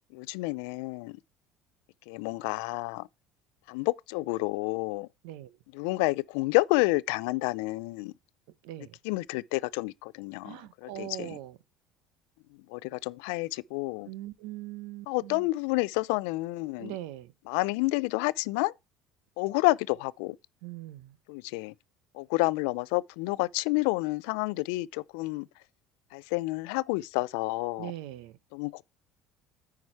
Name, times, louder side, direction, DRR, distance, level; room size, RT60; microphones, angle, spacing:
voice 1, 0.1-1.2 2.1-3.1 3.7-5.1 5.7-8.1 9.0-11.4 12.7-14.1 15.1-16.9 17.5-18.7 19.4-20.4 21.3-21.7 22.2-25.5 26.1-27.9 28.5-28.8, left 22 dB, 85° left, 0.4 m, -29 dB
voice 2, 10.4-11.6 14.1-15.5 16.8-17.3 20.6-21.2 27.8-28.3, right 14 dB, 80° right, 0.8 m, -41 dB
9.7 x 4.8 x 4.5 m
cardioid pair, 120°, 0 cm